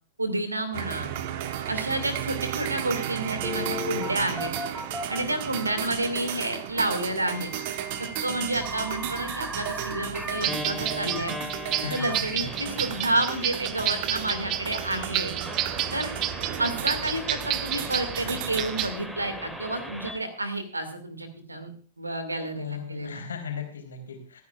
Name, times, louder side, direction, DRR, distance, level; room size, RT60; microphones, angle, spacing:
voice 1, 0.2-1.1 1.7-4.5 5.1-7.5 8.0-11.4 11.9-15.3 15.9-16.1 16.6-21.7 22.0-23.2, right 1 dB, 85° right, 10 dB, 2.1 m, -30 dB
sound 1, 0.7-18.9, right 11 dB, 50° right, 1.1 m, -34 dB
Telephone, 3.4-5.9 7.3-20.2, left 1 dB, 5° right, 1.8 m, -38 dB
sound 2, 10.4-19.0, right 12 dB, 35° right, 0.8 m, -30 dB
voice 2, 11.8-12.6 22.3-24.4, left 6 dB, 75° left, 3 dB, 3.5 m, -37 dB
25.5 x 9.5 x 2.4 m, 0.41 s
figure-of-eight pair, 100°, 0 cm